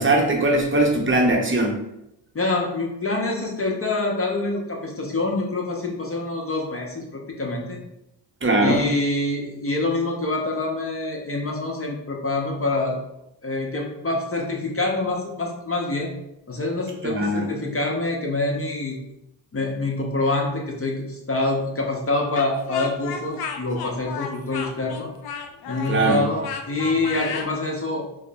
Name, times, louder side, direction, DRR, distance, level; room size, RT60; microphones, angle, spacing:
voice 1, 0.0-1.8 8.4-8.9 17.0-17.5 25.9-26.2, right 2 dB, 25° right, -1 dB, 0.7 m, -20 dB
voice 2, 2.3-7.8 8.6-13.0 13.4-16.1 16.5-19.0 19.5-25.1 25.7-28.0, left 2 dB, 30° left, 0 dB, 0.8 m, -26 dB
Speech, 22.3-27.5, left 6 dB, 55° left, 0.5 m, -33 dB
4.6 x 2.1 x 2.2 m, 0.85 s
supercardioid pair, 50°, 46 cm